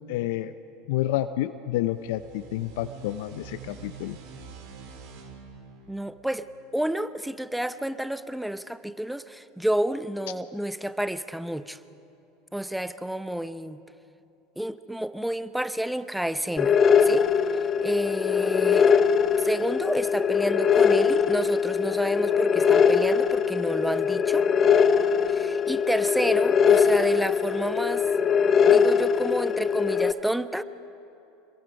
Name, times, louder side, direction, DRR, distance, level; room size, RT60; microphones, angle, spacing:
voice 1, 0.1-0.5 0.9-4.2, left 14 dB, 70° left, 11 dB, 0.6 m, -29 dB
sound 1, 1.8-7.2, right 5 dB, 65° right, 3.4 m, -46 dB
voice 2, 5.9-11.8 12.5-13.8 14.6-18.9 19.4-24.5 25.3-28.1 28.7-30.6, right 1 dB, 5° right, 13 dB, 0.8 m, -30 dB
sound 2, 16.6-30.1, left 6 dB, 35° left, 0.9 m, -21 dB
25.5 x 22.5 x 5.2 m, 2.8 s
hypercardioid pair, 80°, 0 cm